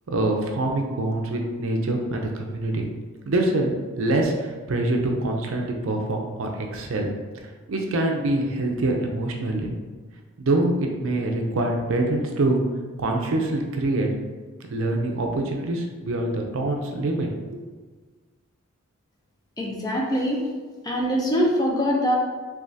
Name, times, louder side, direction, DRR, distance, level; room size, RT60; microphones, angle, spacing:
voice 1, 0.1-2.9 3.3-7.1 7.7-9.7 10.4-12.6 13.0-14.1 14.7-17.3, right 2 dB, 65° right, 2 dB, 0.5 m, -25 dB
voice 2, 19.6-20.4 20.8-22.2, equal, 15° left, -2 dB, 0.5 m, -23 dB
3.4 x 3.1 x 2.6 m, 1.4 s
head